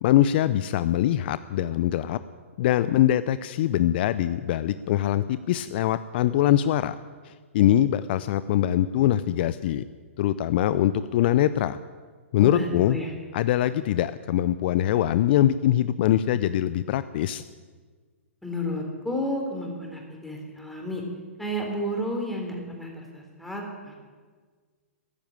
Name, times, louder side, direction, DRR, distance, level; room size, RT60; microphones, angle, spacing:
voice 1, 0.0-2.2 2.6-7.0 7.2-9.8 10.2-11.8 12.3-13.0 13.3-17.4, left 12 dB, 45° left, 14 dB, 0.5 m, -23 dB
voice 2, 12.4-13.1 18.4-21.0 21.4-24.0, equal, ahead, 0 dB, 3.7 m, -31 dB
15.0 x 10.5 x 8.9 m, 1.5 s
hypercardioid pair, 120°, 7 cm